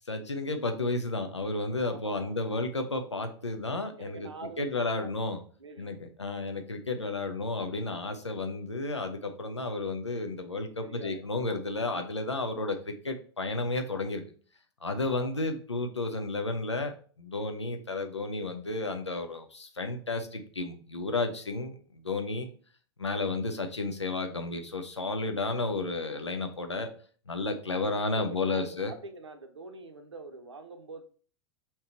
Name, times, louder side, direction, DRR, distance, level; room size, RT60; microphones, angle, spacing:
voice 1, 0.1-4.3 4.6-5.4 5.8-14.2 14.8-22.5 23.0-26.9 27.3-28.9, left 2 dB, 90° left, 6 dB, 0.5 m, -32 dB
voice 2, 1.9-2.4 4.0-5.1 5.6-5.9 10.8-11.6 15.0-15.4 27.5-31.0, right 3 dB, 85° right, 7 dB, 0.6 m, -46 dB
3.4 x 2.8 x 4.3 m, 0.43 s
figure-of-eight pair, 90°, 14 cm